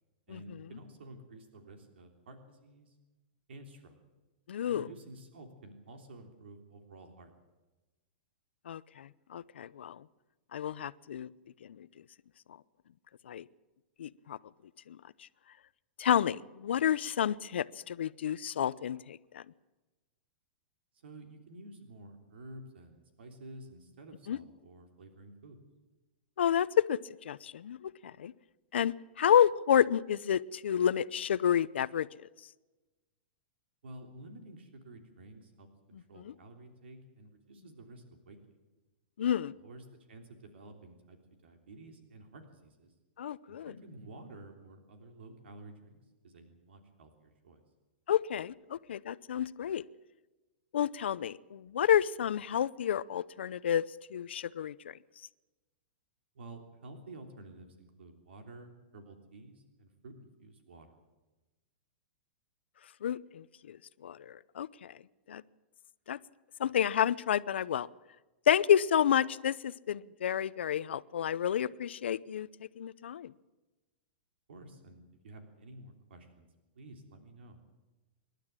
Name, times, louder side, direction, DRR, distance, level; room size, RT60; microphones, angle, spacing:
voice 1, 0.3-2.9 3.5-4.0 4.7-7.3 20.9-25.6 33.8-38.6 39.5-42.9 43.5-47.6 56.3-60.9 74.5-76.5 76.7-77.6, right 2 dB, 90° right, 5 dB, 3.3 m, -51 dB
voice 2, 4.5-4.9 8.7-10.0 10.5-11.3 11.8-11.9 13.3-13.4 14.0-14.4 14.9-15.0 16.0-19.4 24.3-24.4 26.4-27.0 27.2-27.9 28.2-28.3 28.7-32.1 36.2-36.3 39.2-39.5 43.2-43.7 48.1-49.8 50.7-53.8 54.1-54.7 63.0-63.8 64.0-65.0 65.3-65.4 66.1-66.2 66.6-67.9 68.5-72.5 72.8-73.3, left 9 dB, 85° left, 18 dB, 0.7 m, -30 dB
26.0 x 12.0 x 9.0 m, 1.1 s
hypercardioid pair, 155°, 6 cm